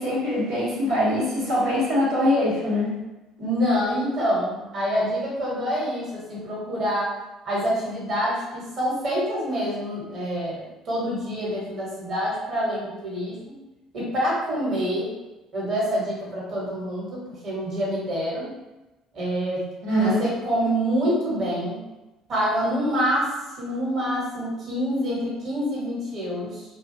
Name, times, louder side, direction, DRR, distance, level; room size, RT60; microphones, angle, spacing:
voice 1, 0.0-2.9 19.8-20.2, left 1 dB, 90° right, -10 dB, 1.1 m, -23 dB
voice 2, 3.4-7.1 7.4-13.5 13.9-15.1 15.5-18.5 19.1-19.6 20.0-21.8 22.3-26.6, equal, 50° right, -5 dB, 1.1 m, -26 dB
2.4 x 2.2 x 2.7 m, 1.0 s
hypercardioid pair, 70°, 0 cm